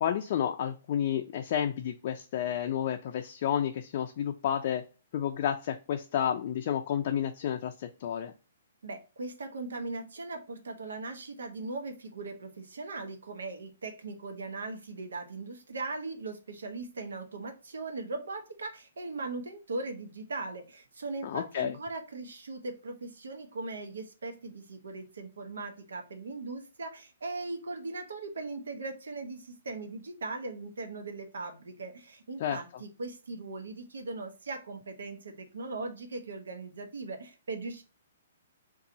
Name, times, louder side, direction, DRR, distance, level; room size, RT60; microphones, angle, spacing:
voice 1, 0.0-4.8 5.1-8.3 21.2-21.8 32.4-32.6, left 9 dB, 50° left, 4 dB, 0.4 m, -31 dB
voice 2, 8.8-37.8, right 3 dB, 90° right, 6 dB, 0.8 m, -39 dB
2.6 x 2.3 x 3.8 m, 0.32 s
hypercardioid pair, 150°, 0 cm